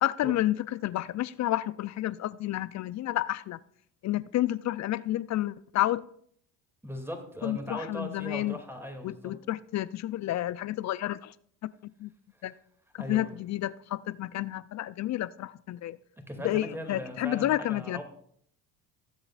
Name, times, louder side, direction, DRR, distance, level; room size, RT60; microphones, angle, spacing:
voice 1, 0.0-3.6 4.0-6.0 7.4-8.6 9.0-11.3 12.0-12.1 12.4-12.5 12.9-16.0 16.4-18.0, left 14 dB, 40° left, 18 dB, 0.4 m, -30 dB
voice 2, 6.8-9.3 13.0-13.3 16.3-18.0, equal, 5° right, 4 dB, 2.4 m, -39 dB
18.5 x 7.8 x 2.4 m, 0.65 s
hypercardioid pair, 60°, 44 cm